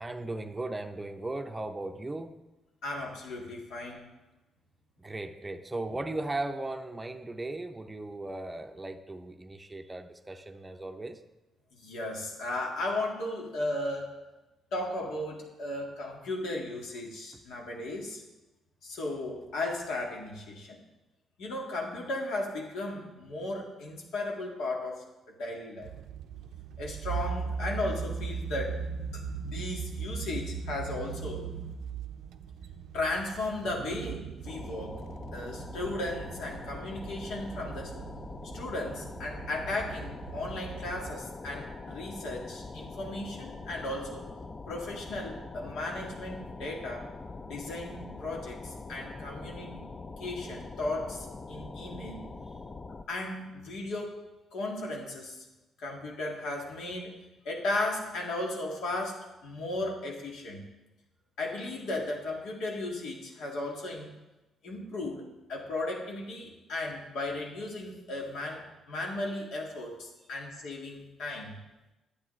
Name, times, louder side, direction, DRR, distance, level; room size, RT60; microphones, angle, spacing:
voice 1, 0.0-2.3 5.0-11.2, right 2 dB, 15° right, 6 dB, 0.6 m, -37 dB
voice 2, 2.8-4.0 11.7-14.1 14.7-18.2 18.8-20.8 21.4-25.0 25.4-25.9 26.8-28.8 29.1-31.5 32.9-35.0 35.3-37.9 38.5-44.2 44.7-47.1 47.4-49.8 50.2-52.4 53.1-54.1 54.5-55.4 55.8-57.1 57.5-60.7 61.4-64.1 64.6-71.6, left 2 dB, 80° left, -1 dB, 1.9 m, -35 dB
sound 1, 25.8-41.2, right 6 dB, 80° right, 0.4 m, -39 dB
sound 2, 34.5-53.0, left 3 dB, 30° left, 0.5 m, -43 dB
11.0 x 8.1 x 3.2 m, 1.0 s
cardioid pair, 90°, 0 cm